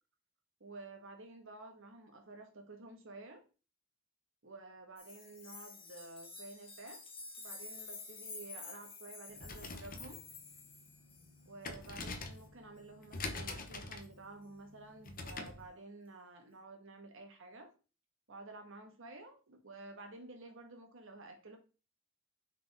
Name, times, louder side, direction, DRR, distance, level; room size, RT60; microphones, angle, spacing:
voice 1, 0.6-3.4 4.4-7.0 7.4-10.2 11.4-17.7 18.3-21.6, right 2 dB, 65° right, 1.4 m, -51 dB
sound 1, 5.0-11.4 13.7-13.8, left 3 dB, 25° left, 1.4 m, -50 dB
sound 2, 9.3-15.7, left 3 dB, 45° left, 0.9 m, -45 dB
5.9 x 4.8 x 3.5 m
head